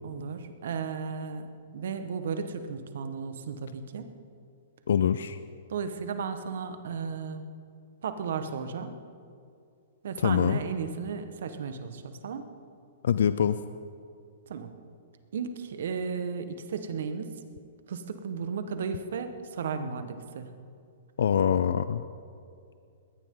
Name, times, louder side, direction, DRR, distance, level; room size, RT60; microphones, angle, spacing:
voice 1, 0.0-1.5 1.7-4.1 5.7-7.4 8.0-9.0 10.0-12.5 14.5-14.7 15.3-17.4 17.9-20.5, right 6 dB, 70° right, 8 dB, 1.5 m, -34 dB
voice 2, 4.9-5.4 10.2-10.6 13.0-13.6 21.2-22.0, left 8 dB, 75° left, 13 dB, 0.5 m, -24 dB
21.0 x 17.0 x 3.9 m, 2.4 s
hypercardioid pair, 130°, 0 cm